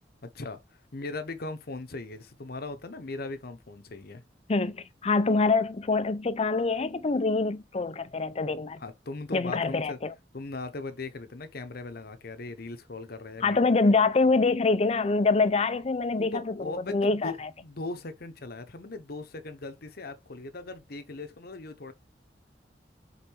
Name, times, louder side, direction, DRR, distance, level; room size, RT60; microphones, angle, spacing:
voice 1, 0.2-0.6 0.9-4.2 8.8-10.0 10.3-13.6 16.2-21.9, left 3 dB, 60° left, 0.9 m, -39 dB
voice 2, 4.5-8.8 9.3-10.1 13.4-17.5, left 3 dB, 35° left, 0.6 m, -25 dB
5.5 x 3.9 x 4.6 m
head